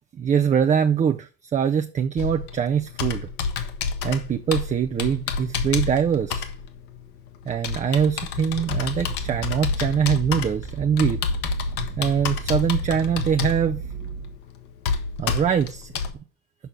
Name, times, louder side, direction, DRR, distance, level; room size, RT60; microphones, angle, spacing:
voice 1, 0.2-3.3 4.0-6.5 7.5-11.2 12.0-13.8 15.2-15.9, right 7 dB, 15° right, 0.4 m, -23 dB
Computer keyboard, 2.2-16.1, left 5 dB, 65° left, 1.4 m, -29 dB
sound 1, 8.6-14.4, right 7 dB, 40° right, 1.0 m, -36 dB
6.9 x 5.5 x 6.1 m
figure-of-eight pair, 65°, 47 cm